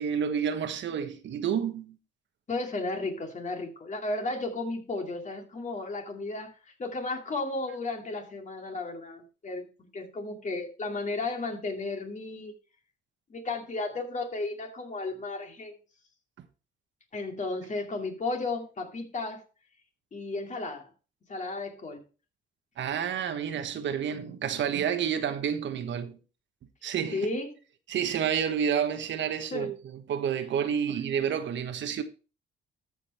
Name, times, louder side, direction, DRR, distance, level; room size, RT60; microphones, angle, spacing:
voice 1, 0.0-2.0 22.8-26.2 26.8-27.3 27.9-32.0, right 8 dB, 65° right, 1.2 m, -29 dB
voice 2, 2.5-12.5 13.3-15.8 17.1-19.4 20.1-20.9 21.3-22.0 27.1-27.5 29.5-29.7 30.9-31.0, left 3 dB, 40° left, 2.6 m, -34 dB
13.5 x 5.4 x 4.3 m
cardioid pair, 90°, 20 cm